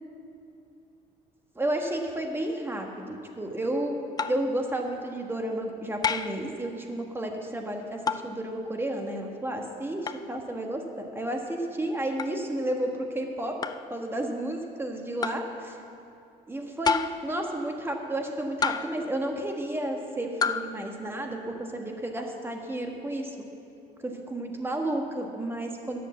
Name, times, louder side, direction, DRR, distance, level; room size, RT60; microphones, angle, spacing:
voice 1, 1.5-3.9 4.3-13.6 13.9-15.8 16.5-23.3 24.0-26.0, right 1 dB, 15° right, 2 dB, 1.4 m, -32 dB
sound 1, 4.2-4.5 6.0-6.4 8.1-8.3 10.1-10.2 12.2-12.4 13.6-13.9 15.2-15.5 16.8-17.3 18.6-19.1 20.4-20.7, left 5 dB, 25° left, 0.4 m, -29 dB
10.5 x 6.6 x 7.5 m, 2.6 s
cardioid pair, 110°, 17 cm